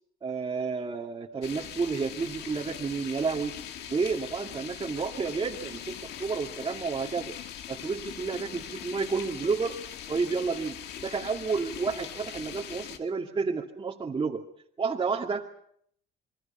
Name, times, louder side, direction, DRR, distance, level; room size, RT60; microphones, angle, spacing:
voice 1, 0.2-3.5 3.9-7.4 7.7-9.7 10.1-14.4 14.8-15.5, right 5 dB, 30° right, -1 dB, 2.3 m, -31 dB
sound 1, 1.4-13.0, left 10 dB, 80° left, 2.2 m, -41 dB
28.0 x 23.0 x 5.7 m, 0.64 s
cardioid pair, 110°, 17 cm